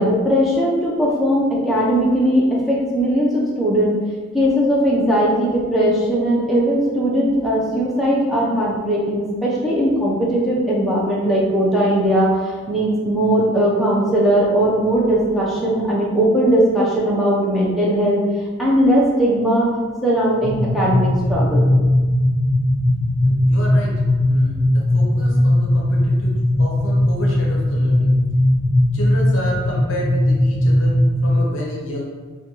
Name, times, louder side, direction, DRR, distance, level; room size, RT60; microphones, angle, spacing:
voice 1, 0.0-4.0 4.3-18.2 18.6-19.7 20.0-21.6, equal, ahead, -6 dB, 0.4 m, -18 dB
sound 1, 20.4-31.3, left 1 dB, 65° right, 0.8 m, -18 dB
voice 2, 23.2-28.1 28.9-32.0, equal, 60° left, -3 dB, 0.6 m, -31 dB
2.5 x 2.2 x 2.8 m, 1.4 s
head